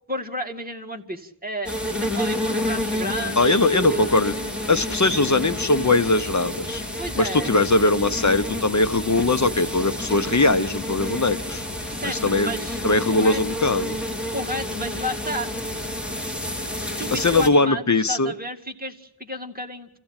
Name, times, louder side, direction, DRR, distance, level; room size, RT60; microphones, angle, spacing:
voice 1, 0.1-4.2 7.0-7.6 11.0-11.2 11.9-12.8 13.1-13.7 14.3-15.5 16.8-19.9, equal, 20° right, 2 dB, 2.3 m, -32 dB
sound 1, 1.6-17.5, left 1 dB, ahead, 3.3 m, -29 dB
voice 2, 3.4-4.3 4.7-6.8 7.2-11.6 12.0-12.5 12.8-14.0 17.1-18.3, left 2 dB, 40° left, 10 dB, 0.9 m, -20 dB
28.5 x 15.5 x 8.9 m, 0.79 s
wide cardioid pair, 75°, 46 cm